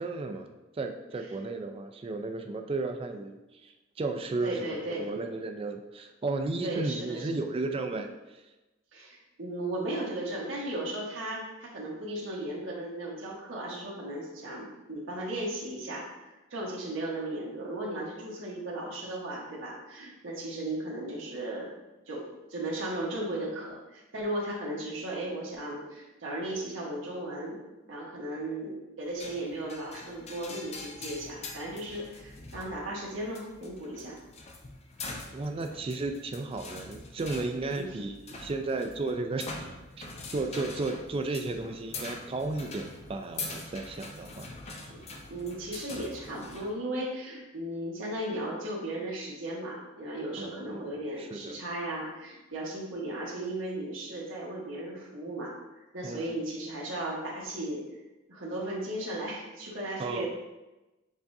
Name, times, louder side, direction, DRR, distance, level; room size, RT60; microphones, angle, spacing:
voice 1, 0.0-8.1 35.3-39.7 40.0-44.9 50.4-51.5 56.0-56.3 60.0-60.3, right 3 dB, 30° right, 5 dB, 0.3 m, -34 dB
voice 2, 4.4-5.1 6.6-7.5 8.9-16.1 16.5-21.7 22.1-27.6 27.9-34.2 37.8-37.9 44.9-45.0 45.3-55.5 55.9-57.8 58.3-60.3, right 1 dB, 85° right, -4 dB, 1.2 m, -36 dB
sound 1, 29.2-46.7, left 3 dB, 35° left, 0.5 m, -44 dB
7.0 x 2.4 x 2.6 m, 1.1 s
head